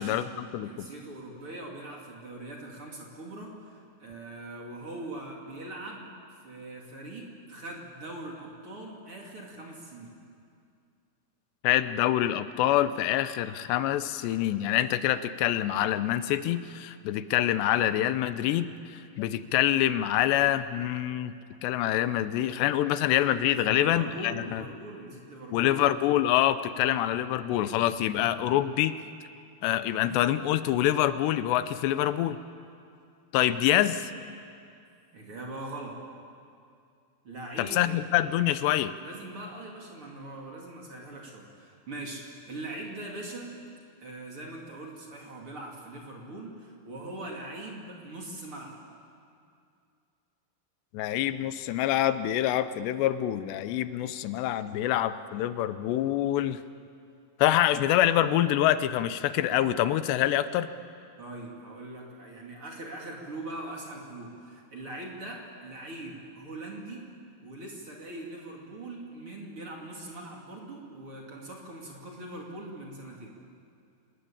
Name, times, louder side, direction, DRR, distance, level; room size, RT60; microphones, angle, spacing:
voice 1, 0.0-0.9 11.6-21.3 21.6-24.6 25.5-28.9 29.6-32.4 33.3-34.1 37.6-39.0 50.9-56.6 57.4-60.7, left 12 dB, 85° left, 12 dB, 3.0 m, -26 dB
voice 2, 0.6-6.1 6.4-10.1 23.6-25.8 35.1-36.0 37.2-38.0 39.0-43.5 44.0-48.8 61.2-67.0 67.4-73.3, right 2 dB, 35° right, -1 dB, 3.2 m, -41 dB
28.5 x 20.5 x 8.8 m, 2.4 s
omnidirectional pair, 4.9 m